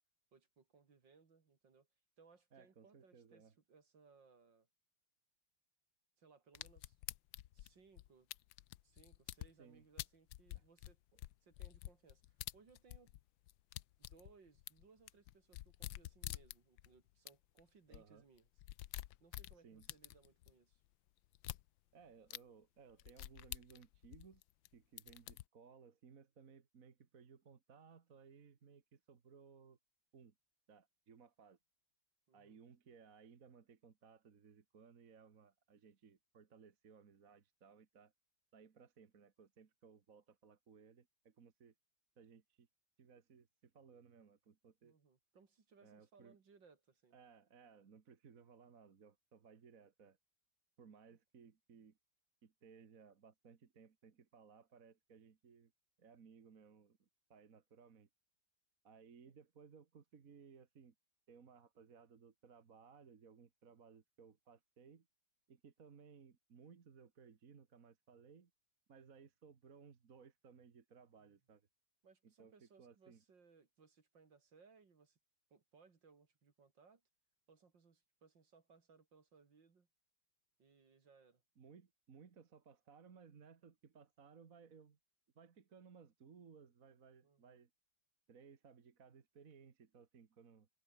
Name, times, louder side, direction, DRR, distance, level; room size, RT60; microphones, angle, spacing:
voice 1, 0.3-1.9 2.2-4.7 6.2-7.0 7.5-8.3 8.8-11.0 11.4-13.2 14.0-18.5 19.2-20.8 32.3-32.6 44.8-47.2 59.2-59.3 72.0-75.2 75.5-77.0 77.5-79.9 80.6-81.4 87.2-87.6, right 5 dB, 65° right, 3.4 m, -67 dB
voice 2, 2.5-3.5 9.6-9.8 10.5-10.6 11.1-11.2 17.9-18.2 19.6-19.9 21.9-24.4 24.7-29.8 30.1-30.3 30.7-31.6 32.3-38.1 38.5-41.7 42.2-42.7 43.0-45.0 45.8-46.4 47.1-50.2 50.8-52.0 52.4-55.7 56.0-58.1 58.8-60.9 61.3-65.1 65.5-68.5 68.9-71.7 72.2-73.2 81.6-85.0 85.4-87.7 88.3-90.7, right 6 dB, 45° right, 1.9 m, -62 dB
sound 1, 6.5-9.5 10.0-13.2 13.5-16.9 17.3-17.4 17.6-17.7 17.9-18.0 18.4-20.5 21.3-21.6 22.3-22.4 23.0-24.7 25.0-25.4, left 15 dB, 80° left, 1.4 m, -48 dB
omnidirectional pair, 2.1 m